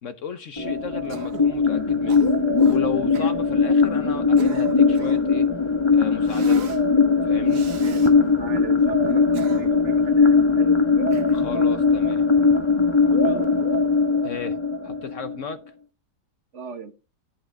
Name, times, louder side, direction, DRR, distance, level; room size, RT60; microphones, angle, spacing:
voice 1, 0.0-2.3 2.5-5.5 5.9-6.8 7.2-7.7 11.3-12.3 14.2-14.6 14.8-15.6, left 6 dB, 55° left, 1.0 m, -34 dB
sound 1, 0.6-15.5, left 4 dB, 20° left, 0.9 m, -20 dB
Cough, 1.1-1.5 2.1-2.8 3.1-3.4 4.1-5.3 6.2-6.8 7.5-8.1 9.1-9.9 11.1-11.6, right 7 dB, 70° right, 1.7 m, -41 dB
voice 2, 7.7-11.1 13.1-13.6 16.5-16.9, right 5 dB, 50° right, 1.3 m, -36 dB
11.5 x 7.8 x 3.4 m
omnidirectional pair, 1.8 m